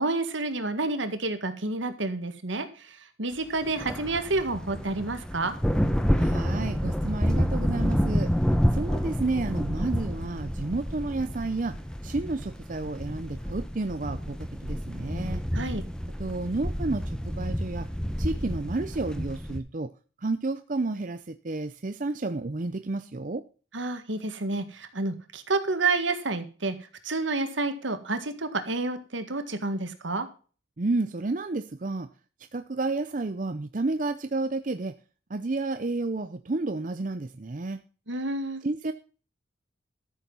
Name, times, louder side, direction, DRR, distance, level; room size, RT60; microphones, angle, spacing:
voice 1, 0.0-5.5 15.5-15.8 23.7-26.8 27.0-30.3 38.1-38.6, right 3 dB, 70° right, 9 dB, 1.9 m, -29 dB
sound 1, 3.6-19.6, equal, 5° left, 0.9 m, -29 dB
voice 2, 6.2-8.3 8.7-11.7 12.0-14.4 14.6-15.4 16.2-17.9 18.2-19.9 20.2-23.4 30.8-32.1 32.5-34.9 35.3-37.8 38.6-38.9, right 3 dB, 40° right, 9 dB, 0.6 m, -31 dB
13.5 x 7.1 x 5.5 m, 0.38 s
head